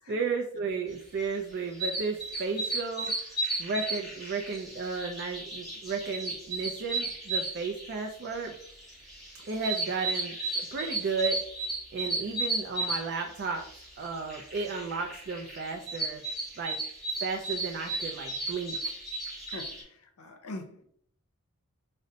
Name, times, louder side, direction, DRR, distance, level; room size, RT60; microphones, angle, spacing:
voice 1, 0.1-3.3 3.6-8.6 9.4-11.4 11.9-13.6 14.0-16.2 16.6-16.8 17.2-18.8, right 4 dB, 50° right, 0.4 m, -33 dB
sound 1, 1.2-19.8, right 2 dB, ahead, 1.2 m, -35 dB
voice 2, 19.5-20.8, left 2 dB, 70° left, 0.6 m, -43 dB
5.0 x 2.1 x 2.7 m
head